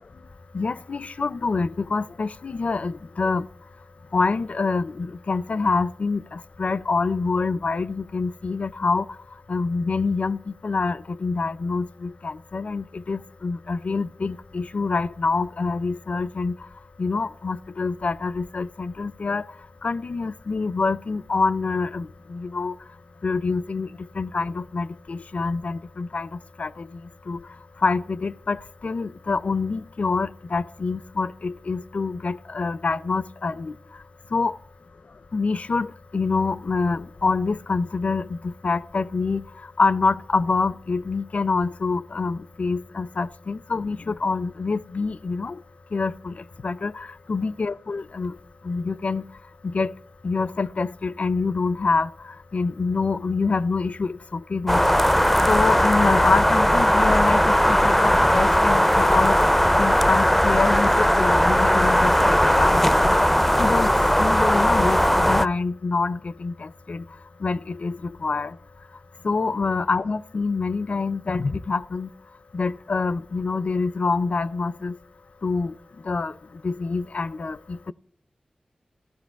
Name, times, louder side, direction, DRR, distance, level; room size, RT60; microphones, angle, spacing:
voice 1, 0.5-3.5 4.1-9.0 9.5-16.6 17.0-19.4 19.8-22.8 23.2-23.9 24.2-26.3 26.6-26.9 27.3-27.4 27.8-33.7 34.3-34.5 35.3-35.9 36.1-39.4 39.8-45.6 45.9-46.3 46.6-48.3 48.6-49.2 49.6-49.9 50.2-52.1 52.5-54.8 55.5-59.4 59.8-62.9 63.6-63.9 64.2-67.0 67.4-68.5 69.2-72.1 72.5-75.0 75.4-75.7 76.1-76.3 76.6-77.9, left 4 dB, 60° left, 0.5 m, -26 dB
sound 1, 54.7-65.5, equal, 5° left, 0.4 m, -18 dB
15.0 x 12.0 x 4.5 m
cardioid pair, 45°, 3 cm